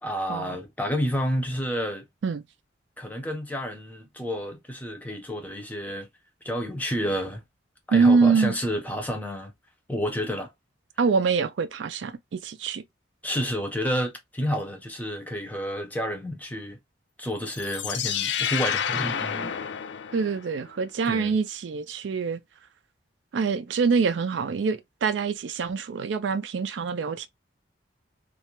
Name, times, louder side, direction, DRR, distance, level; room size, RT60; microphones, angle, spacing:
voice 1, 0.0-2.0 3.0-6.1 6.4-7.4 7.9-9.5 9.9-10.5 13.2-16.8 17.2-19.5 21.1-21.4, equal, 10° left, 0.5 m, -30 dB
voice 2, 7.9-8.5 11.0-12.8 20.1-22.4 23.3-27.3, right 5 dB, 75° right, 0.4 m, -25 dB
sound 1, 17.5-20.6, left 8 dB, 70° left, 0.4 m, -29 dB
2.3 x 2.1 x 2.8 m
head